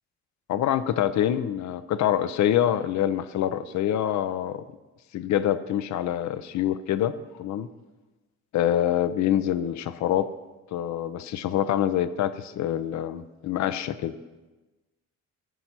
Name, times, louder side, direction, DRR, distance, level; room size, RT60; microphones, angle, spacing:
voice 1, 0.5-4.6 5.1-7.7 8.5-10.3 10.7-14.2, left 11 dB, 65° left, 13 dB, 0.6 m, -25 dB
14.5 x 5.3 x 6.0 m, 1.2 s
cardioid pair, 90°, 30 cm